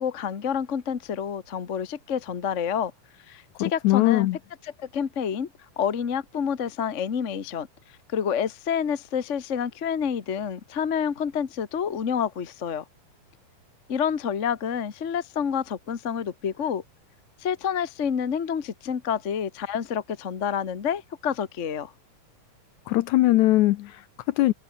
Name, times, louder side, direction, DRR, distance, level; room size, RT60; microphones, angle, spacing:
voice 1, 0.0-2.9 3.3-4.3 4.8-5.5 5.8-7.7 8.1-12.8 13.9-16.8 17.4-21.9, left 7 dB, 50° left, 0.9 m, -28 dB
voice 2, 3.6-4.4 22.9-24.5, left 16 dB, 75° left, 1.9 m, -21 dB
omnidirectional pair, 3.8 m